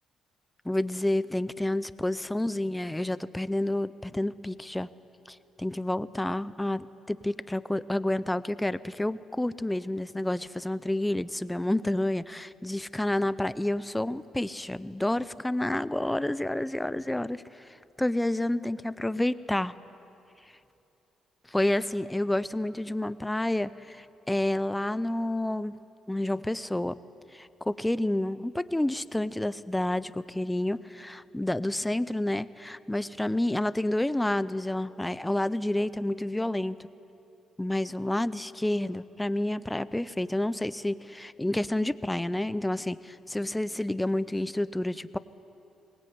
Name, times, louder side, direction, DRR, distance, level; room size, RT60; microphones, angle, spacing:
voice 1, 0.6-4.9 5.3-17.7 18.0-19.7 21.5-25.8 26.1-27.0 27.3-36.8 37.6-45.2, left 1 dB, 10° left, 16 dB, 0.6 m, -29 dB
23.0 x 19.0 x 9.4 m, 2.9 s
cardioid pair, 90°, 0 cm